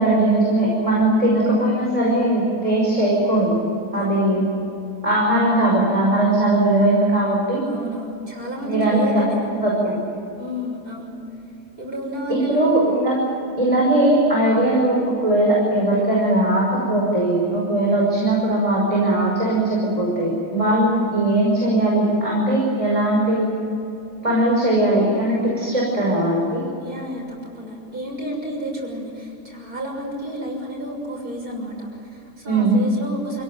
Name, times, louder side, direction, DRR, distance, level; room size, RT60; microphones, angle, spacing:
voice 1, 0.0-3.6 3.9-4.5 5.0-7.6 8.6-10.0 12.3-13.3 13.6-23.5 24.2-26.6 32.5-32.8, right 1 dB, 20° right, -4 dB, 5.8 m, -19 dB
voice 2, 3.9-4.3 7.7-9.4 10.4-11.1 11.8-12.8 26.8-33.4, equal, 70° right, -1 dB, 7.3 m, -31 dB
28.5 x 17.5 x 9.3 m, 2.9 s
omnidirectional pair, 1.7 m